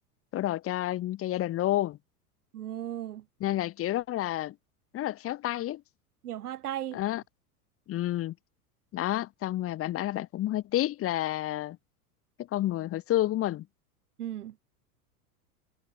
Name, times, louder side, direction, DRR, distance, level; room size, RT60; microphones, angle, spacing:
voice 1, 0.3-2.0 3.4-4.6 4.9-5.8 6.9-7.2 7.9-8.3 8.9-11.8 12.5-13.7, left 14 dB, 30° left, 1.0 m, -30 dB
voice 2, 2.5-3.2 6.2-7.0 14.2-14.6, right 12 dB, 75° right, 4.4 m, -36 dB
hypercardioid pair, 100°, 46 cm